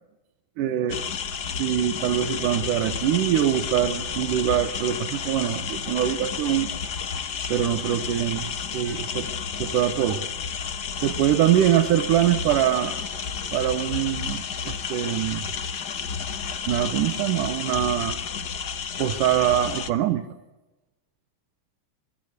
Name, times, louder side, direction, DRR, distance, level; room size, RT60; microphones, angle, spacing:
voice 1, 0.6-1.0 1.5-6.7 7.5-9.3 9.6-10.2 11.0-12.9 13.5-15.4 16.7-18.2 19.0-20.2, right 11 dB, 90° right, 9 dB, 2.7 m, -23 dB
sound 1, 0.9-19.9, left 6 dB, 60° left, 1.0 m, -31 dB
26.5 x 22.0 x 8.2 m, 1.0 s
omnidirectional pair, 3.6 m